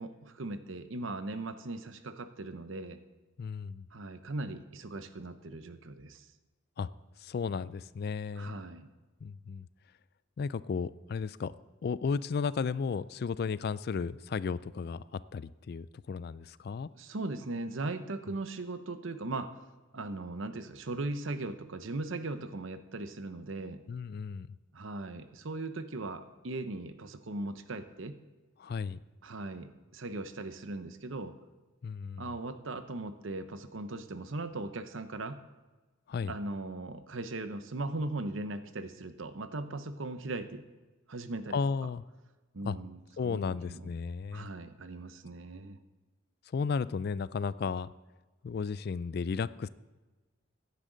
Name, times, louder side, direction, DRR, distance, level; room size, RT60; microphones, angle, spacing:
voice 1, 0.0-3.0 3.9-6.3 8.3-8.9 16.9-19.5 19.9-23.8 24.7-28.2 29.2-31.3 32.2-35.4 36.3-40.6 41.1-41.6 42.5-43.8 44.3-45.8, right 2 dB, 70° right, 10 dB, 0.8 m, -39 dB
voice 2, 3.4-3.9 6.8-6.9 7.2-8.6 9.2-9.7 10.4-11.6 11.8-16.9 23.9-24.5 28.6-29.0 31.8-32.3 36.1-36.3 41.5-42.0 42.6-42.8 43.2-44.5 46.5-47.9 48.4-49.7, left 5 dB, 50° left, 18 dB, 0.3 m, -34 dB
15.5 x 10.0 x 3.9 m, 1.2 s
head